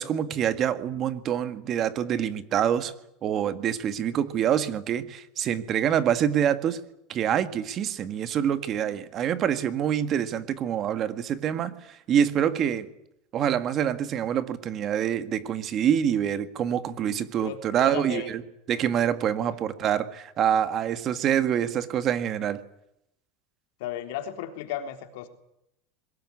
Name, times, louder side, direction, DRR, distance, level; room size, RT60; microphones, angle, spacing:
voice 1, 0.0-2.9 3.2-6.8 7.1-12.9 13.3-18.4 18.7-22.6, right 9 dB, 35° right, 1.7 m, -26 dB
voice 2, 17.4-18.3 23.8-25.3, left 9 dB, 70° left, 3.6 m, -34 dB
22.0 x 19.5 x 9.7 m
supercardioid pair, 145°, 0 cm